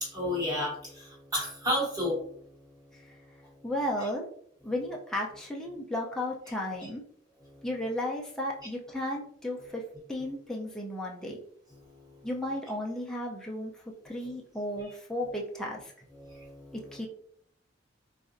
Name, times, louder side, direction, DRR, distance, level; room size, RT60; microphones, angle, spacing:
voice 1, 0.0-2.2 7.5-7.6 11.8-12.3 16.1-16.8, left 1 dB, 20° right, -5 dB, 1.3 m, -32 dB
voice 2, 3.6-4.3 4.6-7.0 7.6-9.8 10.1-11.4 12.2-13.7 14.0-15.9 16.7-17.1, left 1 dB, 5° left, -3 dB, 0.4 m, -34 dB
4.0 x 2.5 x 2.5 m, 0.65 s
head